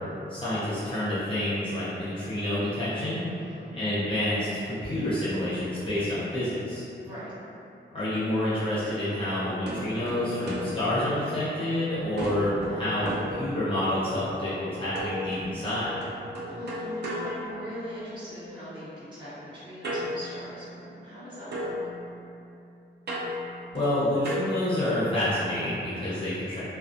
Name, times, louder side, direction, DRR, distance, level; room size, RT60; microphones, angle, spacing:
voice 1, 0.3-3.2 3.7-6.8 7.9-15.9 23.7-26.6, left 1 dB, 30° left, -12 dB, 0.6 m, -28 dB
voice 2, 3.3-3.8 7.0-7.3 16.5-21.7, equal, 25° right, -16 dB, 1.3 m, -40 dB
sound 1, 9.7-11.7 12.2-14.0 14.9-18.2 19.8-21.2 21.5-25.2, equal, 60° right, 0.4 m, -36 dB
2.4 x 2.1 x 2.5 m, 2.7 s
wide cardioid pair, 140°, 19 cm